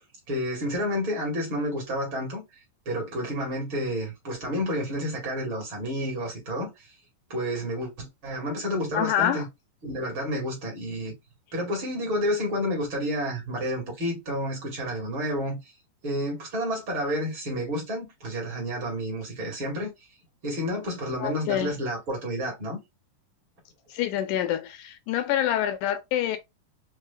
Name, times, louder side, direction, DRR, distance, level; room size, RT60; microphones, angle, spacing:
voice 1, 0.3-2.4 2.9-6.7 7.3-9.5 9.8-11.1 11.5-15.6 16.0-19.9 20.4-22.8, equal, 45° right, 2.3 m, -30 dB
voice 2, 8.9-9.5 21.2-21.7 23.9-26.4, left 11 dB, 80° left, 1.9 m, -26 dB
5.4 x 3.1 x 2.2 m
omnidirectional pair, 3.8 m